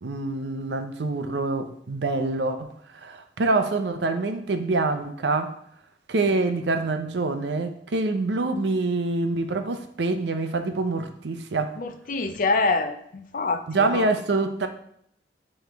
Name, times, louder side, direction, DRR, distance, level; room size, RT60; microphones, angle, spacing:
voice 1, 0.0-2.7 2.9-5.5 6.1-11.8 13.7-14.7, right 3 dB, 70° right, 8 dB, 0.6 m, -26 dB
voice 2, 11.8-14.1, left 3 dB, 50° left, 8 dB, 0.5 m, -26 dB
7.0 x 3.2 x 4.5 m, 0.70 s
head